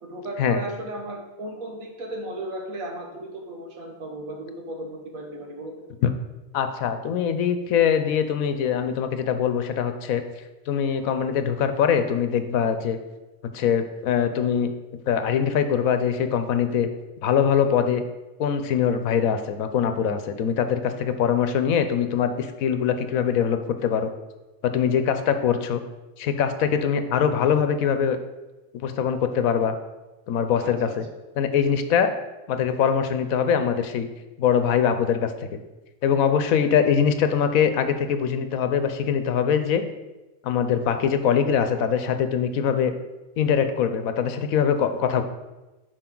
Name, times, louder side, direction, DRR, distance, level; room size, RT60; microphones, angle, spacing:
voice 1, 0.0-5.8 30.6-31.0, right 1 dB, 75° right, 2 dB, 1.7 m, -35 dB
voice 2, 6.5-10.2 10.7-13.0 13.5-14.7 15.1-16.9 17.2-18.0 18.4-24.1 24.6-25.8 26.2-28.2 28.7-29.7 30.3-31.1 31.4-32.1 32.5-34.1 34.4-35.3 36.0-39.8 40.4-42.9 43.4-45.2, left 7 dB, 80° left, 9 dB, 1.1 m, -22 dB
10.5 x 4.8 x 3.8 m, 1.1 s
omnidirectional pair, 1.4 m